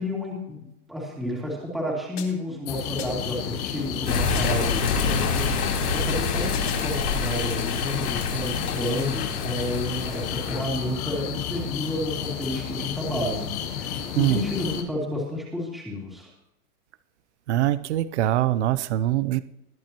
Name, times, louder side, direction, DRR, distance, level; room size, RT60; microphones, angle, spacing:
voice 1, 0.0-16.3, left 1 dB, ahead, -5 dB, 2.6 m, -31 dB
sound 1, 2.2-2.6 3.0-3.4 4.3-4.8 6.5-7.0, left 8 dB, 75° left, 4.2 m, -40 dB
sound 2, 2.7-14.8, left 8 dB, 25° left, 1.0 m, -32 dB
sound 3, 4.1-10.6, left 4 dB, 90° left, 5.0 m, -27 dB
voice 2, 17.5-19.4, right 14 dB, 50° right, 15 dB, 0.7 m, -23 dB
21.0 x 10.5 x 3.0 m, 0.87 s
supercardioid pair, 165°, 46 cm